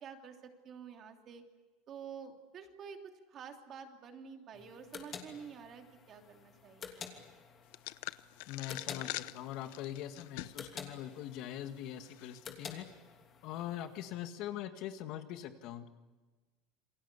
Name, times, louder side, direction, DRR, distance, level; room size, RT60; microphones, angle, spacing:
voice 1, 0.0-1.4 1.9-3.0 3.3-6.9, right 7 dB, 35° right, 4 dB, 3.0 m, -49 dB
sound 1, 4.5-14.1, left 6 dB, 30° left, 2.9 m, -51 dB
sound 2, 7.7-10.7 11.1-11.2 12.0-12.4, left 19 dB, 70° left, 0.8 m, -43 dB
voice 2, 8.5-12.9 13.4-15.9, left 11 dB, 50° left, 8 dB, 1.8 m, -42 dB
28.0 x 22.5 x 8.3 m, 1.2 s
cardioid pair, 160°, 0 cm